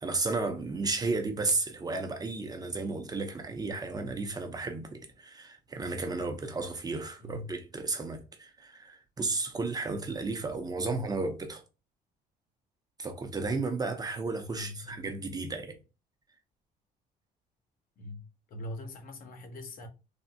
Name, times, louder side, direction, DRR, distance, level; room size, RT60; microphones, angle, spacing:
voice 1, 0.0-11.6 13.0-15.7, right 3 dB, 25° right, 0.5 m, -33 dB
voice 2, 7.2-7.5 10.8-11.1 14.5-15.1 18.0-19.9, left 1 dB, 55° left, 0.8 m, -42 dB
3.4 x 2.0 x 2.6 m
cardioid pair, 110°, 17 cm